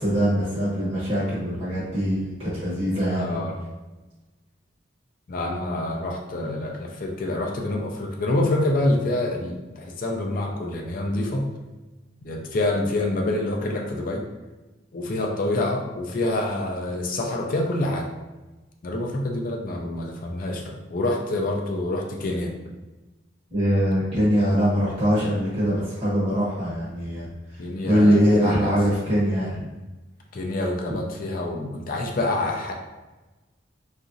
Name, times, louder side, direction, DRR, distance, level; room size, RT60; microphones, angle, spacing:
voice 1, 0.0-3.4 23.5-27.3 27.9-29.6, equal, 30° right, -9 dB, 0.9 m, -22 dB
voice 2, 3.1-3.6 5.3-11.4 12.2-14.3 14.9-18.1 18.8-22.5 27.6-28.7 30.3-32.7, left 2 dB, 45° left, 1 dB, 0.4 m, -27 dB
2.9 x 2.5 x 2.5 m, 1.1 s
head